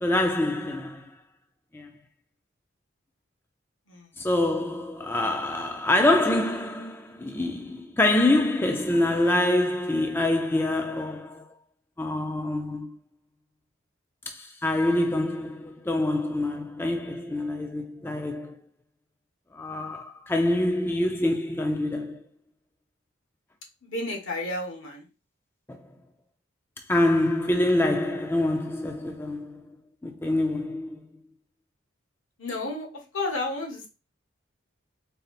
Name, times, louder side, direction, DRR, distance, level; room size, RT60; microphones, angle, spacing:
voice 1, 0.0-1.1 1.7-1.9 4.2-11.4 12.0-13.0 14.3-18.5 19.5-22.2 26.9-29.6 30.0-31.0, left 1 dB, 10° left, 0.4 m, -25 dB
voice 2, 23.8-25.1 32.4-32.9 33.1-33.9, left 2 dB, 80° left, 1.2 m, -31 dB
4.1 x 2.0 x 4.0 m
head